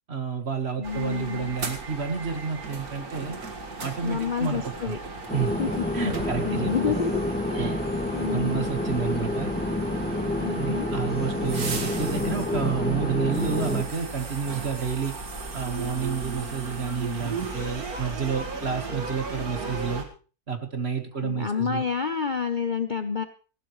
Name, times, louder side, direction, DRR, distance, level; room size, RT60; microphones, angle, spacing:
voice 1, 0.1-3.4 3.8-5.0 5.3-5.5 5.9-7.0 7.6-7.8 8.3-9.5 10.6-15.1 15.5-20.0 20.5-21.9, right 6 dB, 40° right, 7 dB, 1.7 m, -30 dB
voice 2, 0.8-1.6 4.0-5.0 5.6-5.8 6.4-7.2 7.5-7.8 8.1-8.7 10.4-10.9 21.2-23.2, left 6 dB, 40° left, 8 dB, 0.8 m, -29 dB
sound 1, 0.8-20.1, right 3 dB, 65° right, 2.3 m, -36 dB
sound 2, 5.3-13.8, left 1 dB, 5° left, 3.4 m, -28 dB
19.0 x 15.5 x 3.2 m, 0.36 s
omnidirectional pair, 1.7 m